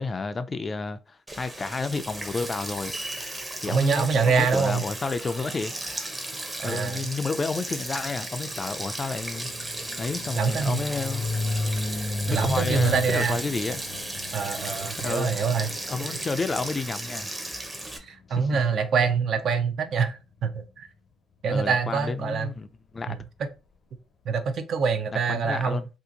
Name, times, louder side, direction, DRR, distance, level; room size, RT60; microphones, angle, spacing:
voice 1, 0.0-2.9 3.6-5.7 6.6-9.5 10.0-11.2 12.3-13.8 15.0-15.3 15.9-17.3 18.3-18.6 21.5-23.2 25.1-25.9, left 4 dB, 30° left, 0.4 m, -30 dB
Sink (filling or washing), 1.3-18.0, right 1 dB, 15° right, 0.7 m, -35 dB
voice 2, 3.7-4.8 6.6-7.1 10.4-10.8 12.3-13.4 14.3-15.7 16.1-16.2 18.0-20.9 21.4-22.5 23.1-23.2 24.3-25.8, right 5 dB, 65° right, 0.6 m, -25 dB
sound 1, 8.3-17.8, left 2 dB, 65° left, 0.7 m, -34 dB
2.7 x 2.5 x 3.7 m
cardioid pair, 90°, 0 cm